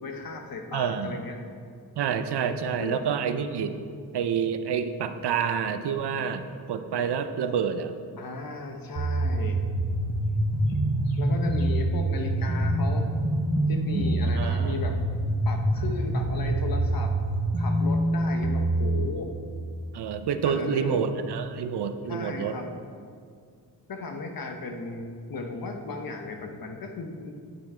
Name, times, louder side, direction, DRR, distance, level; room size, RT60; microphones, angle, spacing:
voice 1, 0.0-1.4 2.8-3.0 8.2-9.7 10.7-10.8 11.1-13.1 13.7-15.0 15.4-17.1 17.6-19.4 20.4-21.1 22.1-22.7 23.9-27.3, left 3 dB, 55° left, 4 dB, 1.0 m, -36 dB
voice 2, 0.7-1.2 2.0-3.7 4.1-7.9 14.4-14.8 19.9-22.6, right 7 dB, 70° right, 9 dB, 0.7 m, -28 dB
sound 1, 9.0-19.1, right 1 dB, 40° right, 1.0 m, -25 dB
9.6 x 8.5 x 4.4 m, 2.2 s
wide cardioid pair, 180°, 41 cm